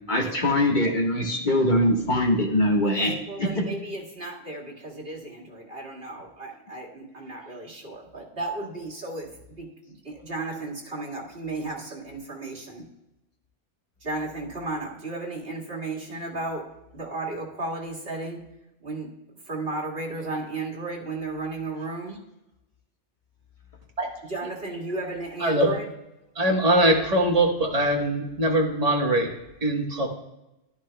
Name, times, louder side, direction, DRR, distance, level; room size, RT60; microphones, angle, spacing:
voice 1, 0.1-3.1 3.5-3.6, left 1 dB, 45° left, 0 dB, 1.6 m, -22 dB
voice 2, 2.8-9.3 9.6-12.9 14.0-16.7 16.9-18.4 18.8-19.1 19.4-22.2 24.3-25.9, right 2 dB, 65° right, -4 dB, 2.2 m, -34 dB
voice 3, 26.4-29.3 29.6-30.1, right 1 dB, 35° right, 0 dB, 1.4 m, -22 dB
11.5 x 11.0 x 2.2 m, 0.93 s
omnidirectional pair, 1.1 m